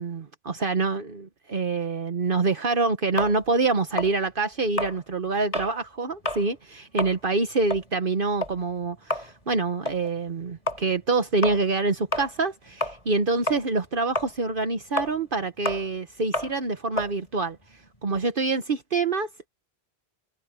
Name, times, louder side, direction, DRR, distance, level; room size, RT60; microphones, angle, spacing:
voice 1, 0.0-17.6 18.0-19.5, right 3 dB, 55° right, 1.3 m, -26 dB
sound 1, 3.2-5.8 6.1-6.5 6.8-13.2 13.5-18.2, left 1 dB, 35° left, 3.6 m, -32 dB
omnidirectional pair, 1.1 m